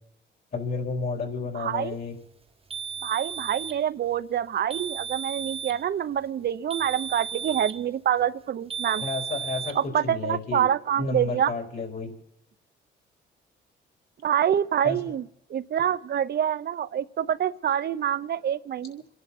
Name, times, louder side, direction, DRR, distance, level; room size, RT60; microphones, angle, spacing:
voice 1, 0.5-2.1 9.0-10.7 11.0-12.1 14.8-15.0, left 4 dB, 50° left, 2 dB, 4.4 m, -31 dB
voice 2, 1.5-2.0 3.0-9.0 9.7-11.5 14.2-15.2 15.5-19.0, right 9 dB, 55° right, 14 dB, 0.8 m, -26 dB
sound 1, 2.7-3.8 4.7-5.8 6.7-7.8 8.7-9.8, right 7 dB, 30° right, 1.1 m, -34 dB
27.5 x 11.0 x 4.2 m, 0.82 s
cardioid pair, 90°, 20 cm